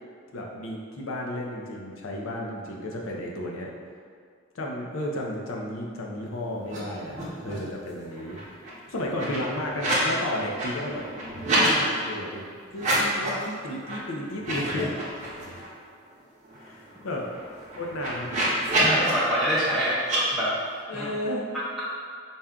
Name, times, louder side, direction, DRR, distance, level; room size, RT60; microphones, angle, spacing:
voice 1, 0.3-3.7 4.5-8.4 8.9-11.1 11.6-15.0 16.5-17.3 17.8-18.3 20.9-21.5, left 1 dB, 75° left, -1 dB, 0.6 m, -33 dB
sound 1, 6.6-6.8 7.0-7.7 8.0-10.1 10.4-11.7 12.7-13.4 13.8-14.0 14.3-15.7 16.1-16.2 16.4-19.1 20.0-20.2, right 1 dB, 35° right, 0.8 m, -28 dB
voice 2, 18.8-20.0 20.3-20.5 20.9-21.1 21.5-21.8, equal, ahead, -10 dB, 0.4 m, -26 dB
4.1 x 2.3 x 3.6 m, 2.1 s
head